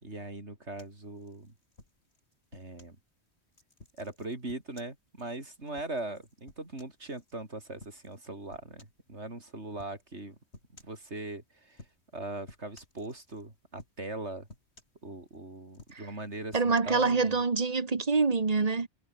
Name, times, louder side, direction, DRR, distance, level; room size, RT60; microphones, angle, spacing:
voice 1, 0.0-1.5 2.5-3.0 4.0-10.4 10.8-11.9 12.1-14.5 15.0-17.4, right 2 dB, 90° right, 5.1 m, -40 dB
sound 1, 0.8-3.0 3.5-7.3 7.8-8.2 8.5-9.1 9.8-10.0 10.5-11.0 11.7-12.2 12.5-13.5 13.8-14.2 14.5-15.4 15.7-16.8, left 2 dB, 75° left, 5.4 m, -55 dB
voice 2, 16.5-18.9, right 4 dB, 35° right, 1.4 m, -26 dB
omnidirectional pair, 1.1 m